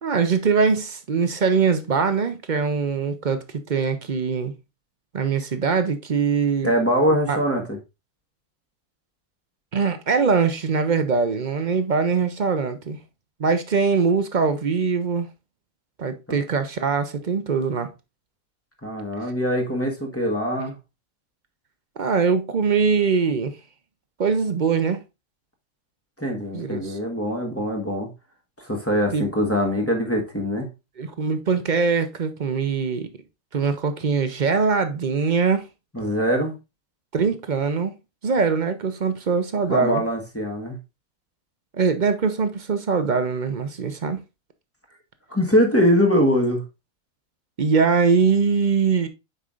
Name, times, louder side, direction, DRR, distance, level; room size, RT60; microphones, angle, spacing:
voice 1, 0.0-4.5 5.1-6.7 7.3-7.4 9.7-13.0 13.4-15.3 16.0-17.9 22.0-23.6 24.2-25.0 26.5-27.0 29.1-29.2 31.0-33.1 33.5-35.7 37.1-37.9 38.2-40.0 41.7-44.2 47.6-49.1, right 5 dB, 45° right, 0.7 m, -22 dB
voice 2, 6.6-7.8 16.3-16.4 18.8-20.8 26.2-28.1 28.6-30.7 35.9-36.6 39.7-40.8 45.3-46.6, equal, 10° left, 1.1 m, -22 dB
8.0 x 5.6 x 2.4 m
omnidirectional pair, 1.5 m